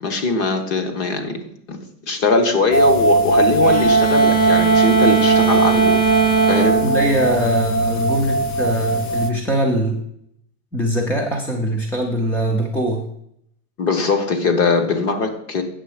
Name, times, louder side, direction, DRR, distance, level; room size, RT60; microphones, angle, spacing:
voice 1, 0.0-1.4 1.7-1.8 2.1-6.0 6.5-6.8 13.8-15.6, left 4 dB, 35° left, 7 dB, 1.2 m, -20 dB
sound 1, 2.7-9.3, right 2 dB, 80° left, 1.3 m, -19 dB
sound 2, 3.6-8.1, right 7 dB, 65° left, 3.9 m, -20 dB
voice 2, 6.8-10.0 10.7-13.0, equal, 5° left, 2 dB, 0.4 m, -22 dB
8.7 x 6.7 x 4.9 m, 0.73 s
supercardioid pair, 160°, 44 cm